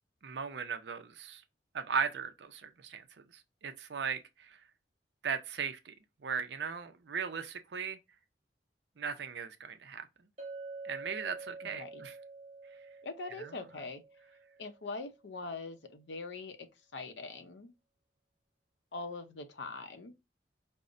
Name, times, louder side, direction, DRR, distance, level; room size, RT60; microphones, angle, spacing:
voice 1, 0.2-1.4 1.7-4.6 5.2-5.9 6.2-8.0 9.0-10.1 10.8-12.1 13.4-13.5, right 6 dB, 70° right, 0.5 m, -37 dB
Chink clink, 10.4-14.8, right 3 dB, 35° right, 1.1 m, -47 dB
voice 2, 11.6-12.0 13.0-14.0 14.6-16.7 16.9-17.7 18.9-20.1, left 3 dB, 80° left, 0.6 m, -42 dB
5.3 x 2.0 x 2.5 m
head